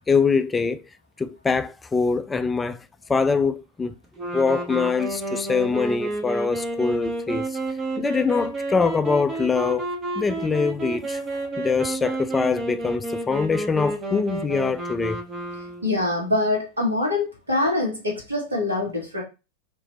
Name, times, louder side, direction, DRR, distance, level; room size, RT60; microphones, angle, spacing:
voice 1, 0.1-0.8 1.2-2.8 3.1-4.0 4.3-7.6 8.0-9.9 10.2-11.2 11.6-15.2, left 4 dB, 15° left, 0.3 m, -23 dB
sound 1, 4.2-16.0, right 2 dB, 25° right, 0.9 m, -30 dB
voice 2, 15.8-19.2, left 2 dB, 75° right, 2.1 m, -24 dB
3.7 x 3.2 x 4.0 m
figure-of-eight pair, 90°, 0 cm